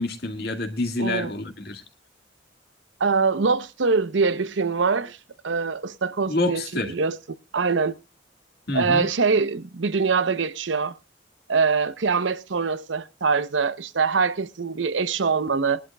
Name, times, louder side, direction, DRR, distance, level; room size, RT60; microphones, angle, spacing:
voice 1, 0.0-1.8 6.3-6.9 8.7-9.0, left 2 dB, 55° left, 1.8 m, -27 dB
voice 2, 1.0-1.3 3.0-5.2 5.4-7.2 7.5-8.0 8.7-10.9 11.5-15.8, right 4 dB, 85° right, 0.7 m, -23 dB
22.0 x 11.5 x 2.2 m
head